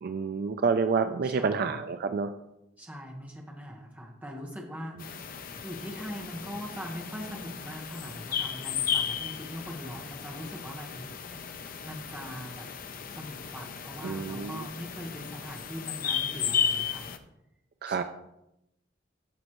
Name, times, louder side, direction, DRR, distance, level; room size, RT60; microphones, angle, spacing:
voice 1, 0.0-2.3 14.0-14.6 17.8-18.0, right 5 dB, 50° right, 8 dB, 0.4 m, -28 dB
voice 2, 1.2-1.8 2.8-5.3 5.6-11.1 11.8-12.7 13.1-17.1 17.8-18.0, equal, 10° right, 0 dB, 1.3 m, -41 dB
sound 1, 5.0-17.2, left 7 dB, 45° left, 0.6 m, -34 dB
13.0 x 5.3 x 3.0 m, 0.87 s
head